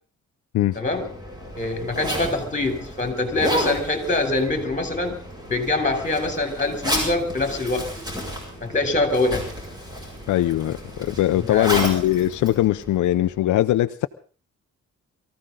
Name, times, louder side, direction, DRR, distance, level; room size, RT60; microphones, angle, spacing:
voice 1, 0.7-1.1 1.5-5.2 5.5-7.9 8.6-9.5 11.4-11.8, left 2 dB, 25° left, 6 dB, 3.4 m, -24 dB
Zipper (clothing), 0.7-13.4, equal, 15° right, 6.8 m, -32 dB
voice 2, 10.3-14.1, left 14 dB, 85° left, 10 dB, 0.7 m, -21 dB
23.0 x 15.0 x 3.8 m, 0.39 s
cardioid pair, 130°, 29 cm